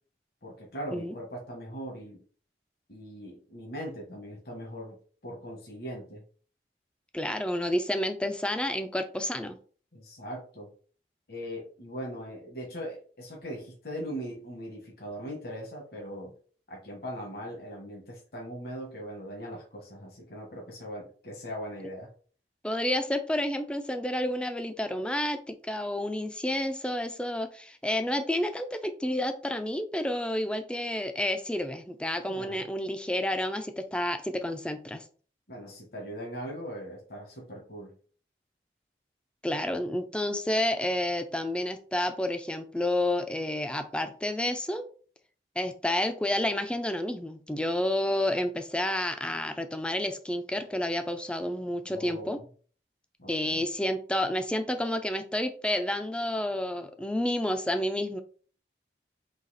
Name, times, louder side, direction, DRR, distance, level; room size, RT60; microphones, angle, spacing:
voice 1, 0.4-2.2 2.9-5.0 5.2-6.2 9.9-10.7 11.3-16.3 16.7-22.1 32.3-32.6 35.5-38.0 51.8-52.4 53.2-53.7, equal, 60° left, -1 dB, 1.2 m, -40 dB
voice 2, 7.1-9.6 22.6-35.0 39.4-44.8 45.6-52.4 53.3-58.2, left 1 dB, 5° left, 8 dB, 0.3 m, -30 dB
4.0 x 2.8 x 4.1 m, 0.43 s
head